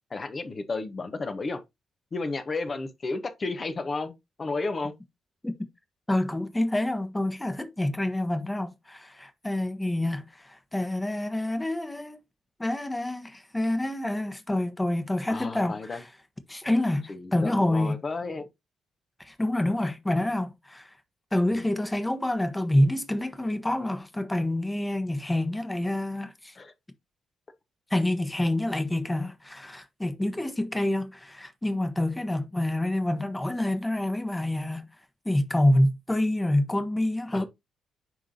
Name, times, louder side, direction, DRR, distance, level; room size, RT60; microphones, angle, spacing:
voice 1, 0.1-1.6 2.1-5.0 15.3-16.0 17.1-18.5 21.5-21.7 26.6-26.7 37.3-37.4, left 3 dB, 40° left, 1.2 m, -32 dB
voice 2, 6.1-12.2 12.6-16.1 16.5-18.0 19.2-20.9 21.3-26.6 27.9-34.9 35.2-37.5, left 1 dB, 15° left, 1.3 m, -27 dB
10.5 x 3.8 x 2.8 m
hypercardioid pair, 40°, 0 cm